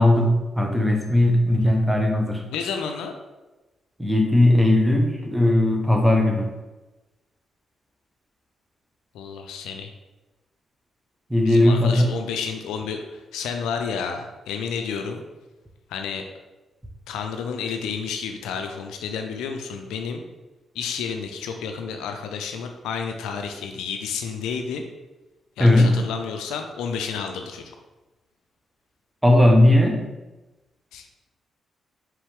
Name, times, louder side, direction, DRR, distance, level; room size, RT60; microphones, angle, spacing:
voice 1, 0.0-2.4 4.0-6.5 11.3-12.1 25.6-26.0 29.2-30.0, left 1 dB, 5° right, 2 dB, 0.9 m, -18 dB
voice 2, 2.5-3.2 9.1-9.9 11.4-15.2 15.9-16.3 17.1-20.2 20.7-24.9 25.6-27.8 30.9-31.1, left 6 dB, 85° left, 5 dB, 0.4 m, -31 dB
4.5 x 3.1 x 3.4 m, 1.1 s
supercardioid pair, 50°, 0 cm